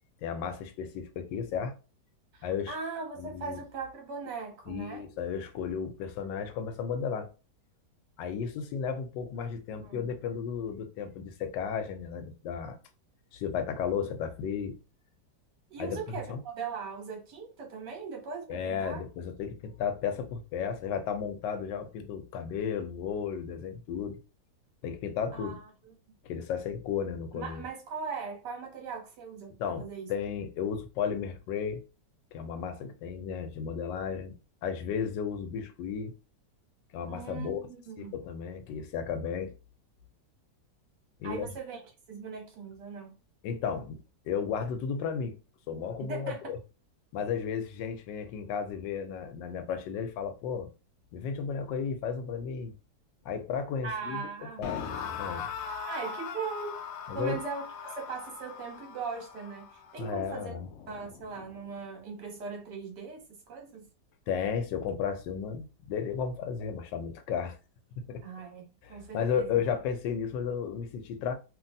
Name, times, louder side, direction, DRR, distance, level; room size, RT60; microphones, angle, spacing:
voice 1, 0.2-1.7 2.4-2.8 3.2-3.6 4.7-7.3 8.2-12.8 13.3-14.8 15.8-16.4 18.5-24.2 24.8-25.6 26.2-27.6 29.6-31.8 32.3-34.4 34.6-36.1 36.9-37.6 38.1-39.5 41.2-41.5 43.4-44.0 44.2-45.3 45.7-46.6 47.1-50.7 51.1-52.7 53.2-54.2 54.6-54.8 55.2-55.5 57.1-57.4 60.0-60.7 64.3-67.6 68.1-68.2 68.8-71.3, left 7 dB, 90° left, 1.2 m, -34 dB
voice 2, 2.3-5.1 9.8-10.1 15.7-19.0 25.3-25.9 27.3-30.1 37.1-38.2 41.2-41.8 42.1-43.1 46.0-46.5 53.8-54.7 55.9-56.8 57.1-60.5 60.9-63.9 68.2-69.6, right 5 dB, 75° right, 1.6 m, -39 dB
sound 1, 54.6-61.7, left 6 dB, 70° left, 0.8 m, -40 dB
3.1 x 2.6 x 2.6 m
omnidirectional pair, 1.9 m